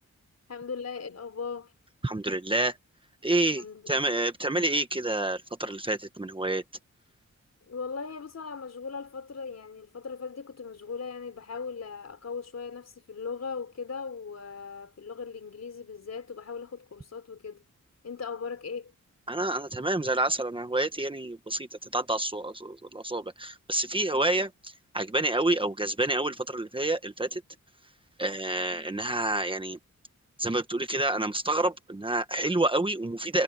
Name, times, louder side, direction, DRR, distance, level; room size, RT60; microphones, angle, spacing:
voice 1, 0.5-1.7 3.6-4.0 7.7-17.6 18.0-18.9 24.1-24.3 28.5-28.8, left 5 dB, 60° left, 4.4 m, -38 dB
voice 2, 2.0-2.8 3.2-6.6 19.3-21.7 21.9-27.4 28.2-29.8 30.4-33.4, right 2 dB, 15° right, 1.3 m, -28 dB
wide cardioid pair, 155°, 30 cm